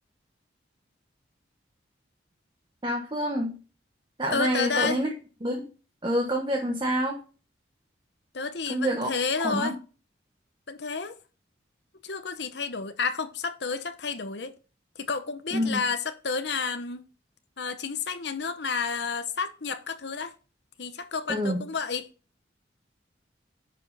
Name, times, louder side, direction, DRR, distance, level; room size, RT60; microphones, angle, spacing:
voice 1, 2.8-3.5 4.2-5.1 5.4-5.7 6.0-7.2 8.7-9.1 9.4-9.7 15.5-15.8 21.3-21.6, equal, 25° right, 1.3 m, -27 dB
voice 2, 4.3-5.0 8.3-9.8 10.7-11.2 12.0-14.6 15.0-17.0 17.6-20.3 20.8-22.1, left 5 dB, 65° left, 0.9 m, -30 dB
10.5 x 5.2 x 4.1 m
head